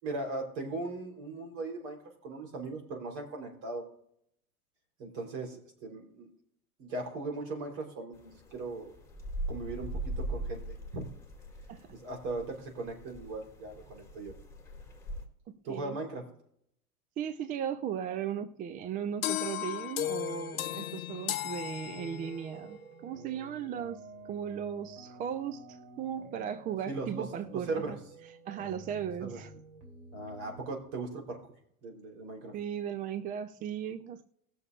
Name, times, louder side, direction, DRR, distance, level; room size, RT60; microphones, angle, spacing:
voice 1, 0.0-3.9 5.0-6.3 6.8-8.9 9.5-10.6 10.9-11.1 11.9-14.3 15.6-16.3 26.9-27.2 27.5-27.9 29.2-29.4 30.1-31.4 31.8-32.6, right 3 dB, 55° right, 2 dB, 3.6 m, -38 dB
sound 1, 8.1-15.2, right 1 dB, 5° left, 2.4 m, -41 dB
voice 2, 17.2-24.0 24.3-28.0 28.5-29.5 32.5-34.2, right 9 dB, 20° right, 10 dB, 0.5 m, -37 dB
sound 2, 19.2-22.5, left 13 dB, 70° left, 0.9 m, -35 dB
sound 3, 21.7-30.7, right 2 dB, 35° right, 3.0 m, -50 dB
20.5 x 6.9 x 2.4 m, 0.70 s
hypercardioid pair, 100°, 44 cm